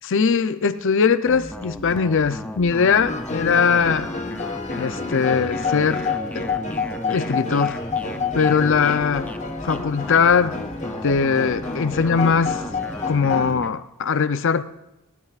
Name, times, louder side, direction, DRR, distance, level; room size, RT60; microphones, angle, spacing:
voice 1, 0.0-4.1 4.8-6.1 6.3-6.5 7.1-7.8 8.3-9.3 9.6-10.6 11.0-12.6 13.1-14.6, left 5 dB, 55° left, 13 dB, 0.5 m, -20 dB
sound 1, 1.3-13.7, left 1 dB, 5° left, 0.5 m, -35 dB
sound 2, 3.1-13.5, left 4 dB, 30° left, 1.2 m, -29 dB
19.0 x 18.5 x 2.4 m, 0.94 s
head